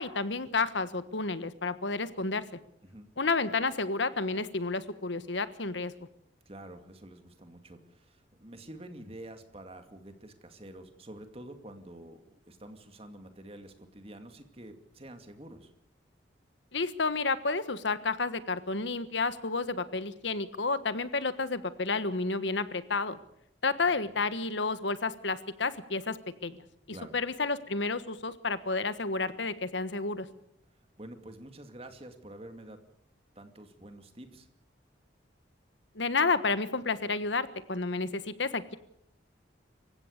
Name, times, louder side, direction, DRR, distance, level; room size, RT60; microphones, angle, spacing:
voice 1, 0.0-2.4 3.2-5.9 16.7-23.2 23.6-26.6 27.1-30.3 35.9-38.8, left 3 dB, 75° left, 13 dB, 1.4 m, -31 dB
voice 2, 6.5-15.7 26.9-27.1 31.0-32.8 33.4-34.5, right 1 dB, 30° right, 7 dB, 2.4 m, -48 dB
26.0 x 16.0 x 6.7 m, 0.72 s
head